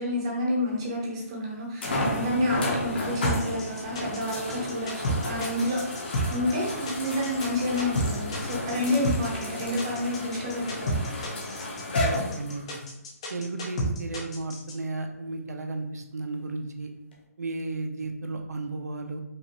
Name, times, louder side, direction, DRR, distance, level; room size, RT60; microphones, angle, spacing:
voice 1, 0.0-11.1, left 1 dB, 20° right, -2 dB, 0.7 m, -29 dB
sound 1, 0.7-0.8 1.8-12.8 13.6-13.7 17.1-17.2, left 1 dB, 40° left, 0.9 m, -33 dB
sound 2, 3.2-14.7, equal, 20° left, 0.5 m, -30 dB
voice 2, 12.0-12.8 13.3-16.9 17.4-19.2, right 3 dB, 75° right, 4 dB, 0.7 m, -34 dB
5.0 x 2.5 x 2.9 m, 0.86 s
hypercardioid pair, 180°, 9 cm